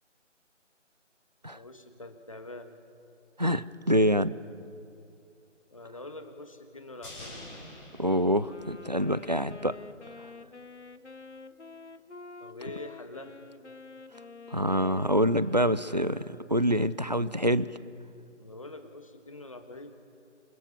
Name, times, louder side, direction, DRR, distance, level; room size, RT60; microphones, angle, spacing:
voice 1, 1.5-2.7 5.7-7.5 12.4-13.4 18.4-20.0, left 2 dB, 25° left, 6 dB, 1.6 m, -44 dB
voice 2, 3.4-4.3 8.0-9.7 14.5-17.7, equal, 35° right, 16 dB, 0.5 m, -26 dB
sound 1, 7.0-9.4 9.7-9.8, left 1 dB, 5° left, 6.6 m, -47 dB
Wind instrument woodwind instrument, 8.4-16.7, left 3 dB, 65° left, 1.2 m, -48 dB
27.5 x 16.0 x 6.9 m, 2.6 s
figure-of-eight pair, 170°, 37 cm